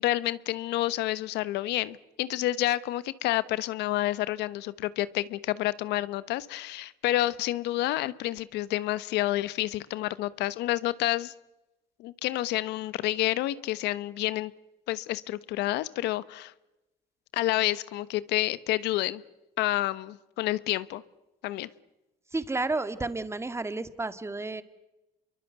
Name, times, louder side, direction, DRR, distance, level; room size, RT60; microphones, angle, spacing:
voice 1, 0.0-11.3 12.0-14.5 14.9-16.5 17.3-19.2 19.6-21.0 21.4-21.7, left 15 dB, 85° left, 17 dB, 1.2 m, -29 dB
voice 2, 22.3-24.6, right 3 dB, 15° right, 12 dB, 2.0 m, -31 dB
28.0 x 23.5 x 8.1 m, 1.0 s
cardioid pair, 110°, 17 cm